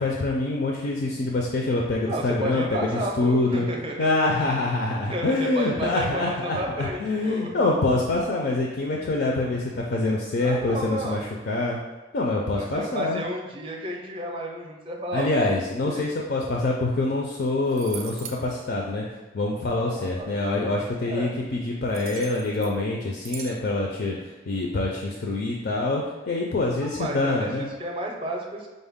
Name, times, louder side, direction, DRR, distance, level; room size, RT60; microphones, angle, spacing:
voice 1, 0.0-2.6 3.2-3.7 4.0-11.2 11.5-11.8 12.1-13.2 15.1-19.1 19.3-27.7, left 2 dB, 55° left, -1 dB, 0.4 m, -25 dB
voice 2, 2.1-4.1 5.0-7.5 10.4-11.3 12.6-16.0 19.9-20.4 21.0-21.4 26.8-28.7, right 1 dB, 25° right, 0 dB, 0.5 m, -32 dB
sound 1, 17.3-17.4 17.7-18.4 21.9-22.8 23.2-23.6, right 7 dB, 85° right, 0.5 m, -40 dB
5.1 x 2.1 x 3.5 m, 1.2 s
head